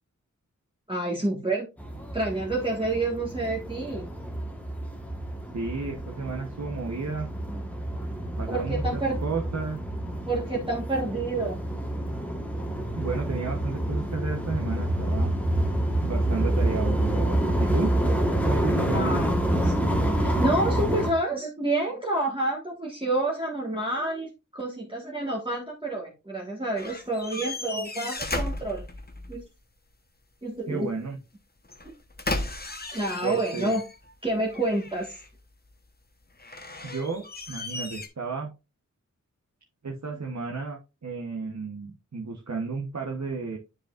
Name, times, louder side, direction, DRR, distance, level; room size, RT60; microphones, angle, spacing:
voice 1, 0.9-1.7 2.1-4.1 8.5-9.2 10.3-11.6 18.9-19.3 19.6-19.7 20.0-28.8 29.3-29.4 30.4-30.9 31.8-31.9 32.9-33.8 34.2-35.2, right 2 dB, 15° right, -3 dB, 1.5 m, -28 dB
sound 1, 1.8-21.1, right 1 dB, 5° left, 1.3 m, -28 dB
voice 2, 5.5-7.3 8.4-9.8 13.0-15.3 16.0-17.9 18.4-19.1 30.7-31.2 33.2-33.8 36.8-38.5 39.8-43.6, right 4 dB, 55° right, 1 dB, 1.0 m, -32 dB
sound 2, 26.8-29.4 31.6-34.1 34.5-35.4 36.4-38.1, left 2 dB, 30° left, 1.0 m, -35 dB
9.9 x 5.1 x 2.4 m, 0.28 s
wide cardioid pair, 75°, 32 cm